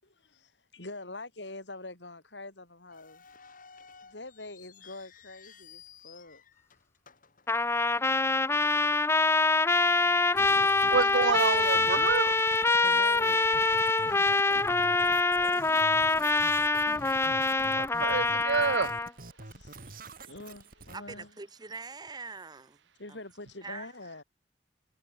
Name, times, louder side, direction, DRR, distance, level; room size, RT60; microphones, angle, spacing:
voice 1, 0.0-3.2 4.0-6.4 12.8-16.4 19.3-21.3 23.0-24.2, left 2 dB, 80° left, 6.3 m, -46 dB
sound 1, 2.9-8.2 8.5-8.6 9.3-9.5 10.0-10.1 10.7-11.3 11.6-14.1, left 7 dB, 50° left, 5.3 m, -56 dB
Trumpet, 7.5-19.1, left 3 dB, 15° left, 0.7 m, -25 dB
sound 2, 10.3-21.0, right 2 dB, 55° right, 5.7 m, -47 dB
voice 2, 10.9-12.4 17.8-19.0, right 5 dB, 85° right, 0.7 m, -28 dB
voice 3, 20.9-22.8 23.6-23.9, right 4 dB, 25° right, 1.0 m, -43 dB
head